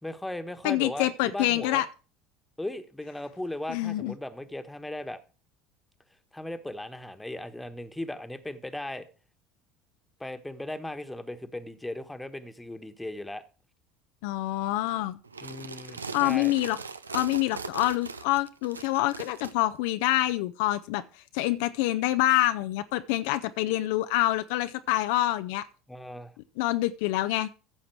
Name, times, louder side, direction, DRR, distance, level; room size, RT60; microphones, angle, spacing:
voice 1, 0.0-1.8 2.6-5.2 6.3-9.1 10.2-13.4 15.4-16.6 25.9-26.3, left 1 dB, 5° left, 1.4 m, -37 dB
voice 2, 0.6-1.9 3.7-4.1 14.2-15.2 16.1-16.8 17.1-21.0 21.3-25.7 26.6-27.5, left 16 dB, 65° left, 0.5 m, -26 dB
sound 1, 15.2-19.5, right 4 dB, 85° right, 0.5 m, -39 dB
14.5 x 7.2 x 4.6 m
figure-of-eight pair, 65°, 0 cm